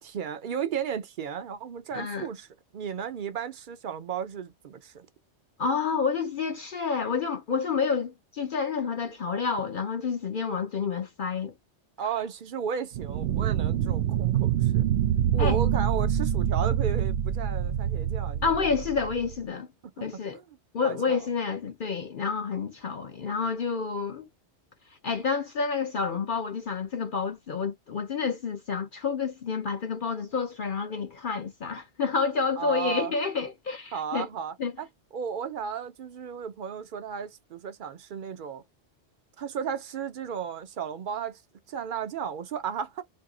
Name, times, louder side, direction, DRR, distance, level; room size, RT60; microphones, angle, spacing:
voice 1, 0.0-2.5 2.7-5.1 12.0-14.9 15.3-18.5 20.1-20.4 20.8-21.3 32.6-33.1 33.9-34.9 35.1-38.6 39.4-41.4 41.7-43.0, right 7 dB, 55° right, 0.7 m, -34 dB
voice 2, 1.9-2.3 5.6-11.5 15.4-15.6 18.4-19.7 20.0-20.4 20.7-24.3 25.0-34.3 34.6-34.7, left 5 dB, 55° left, 0.7 m, -29 dB
sound 1, 12.9-19.4, right 10 dB, 90° right, 0.9 m, -26 dB
2.8 x 2.7 x 3.7 m
omnidirectional pair, 1.2 m